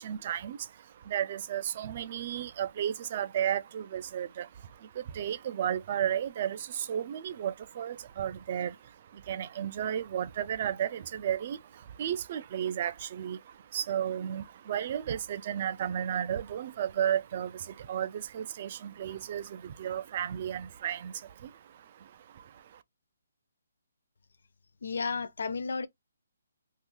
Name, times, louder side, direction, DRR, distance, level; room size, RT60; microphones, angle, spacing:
voice 1, 0.0-22.8, right 9 dB, 30° right, 0.3 m, -34 dB
voice 2, 24.8-25.9, left 4 dB, 60° left, 0.4 m, -32 dB
2.7 x 2.4 x 3.7 m
hypercardioid pair, 175°, 0 cm